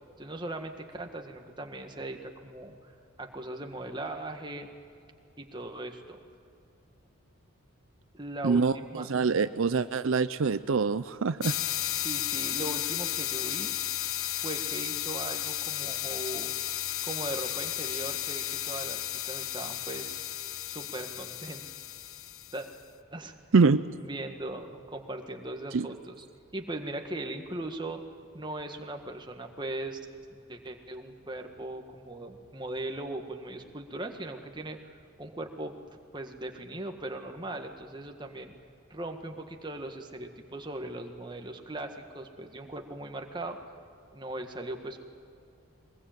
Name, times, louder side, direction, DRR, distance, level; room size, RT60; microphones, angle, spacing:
voice 1, 0.2-4.7 5.4-6.2 8.1-9.1 12.0-13.7 14.4-16.5 17.0-20.2 20.7-21.6 22.5-22.7 23.1-23.3 24.0-26.2 26.5-28.0 28.3-30.0 30.3-35.7 36.1-38.5 38.9-43.6 44.1-45.0, right 1 dB, 20° right, 4 dB, 1.7 m, -39 dB
voice 2, 8.4-11.5 23.5-23.8 25.7-25.9, right 4 dB, 70° right, 12 dB, 0.5 m, -25 dB
sound 1, 11.4-22.7, left 12 dB, 85° left, 1.0 m, -34 dB
23.0 x 21.0 x 9.2 m, 2.5 s
head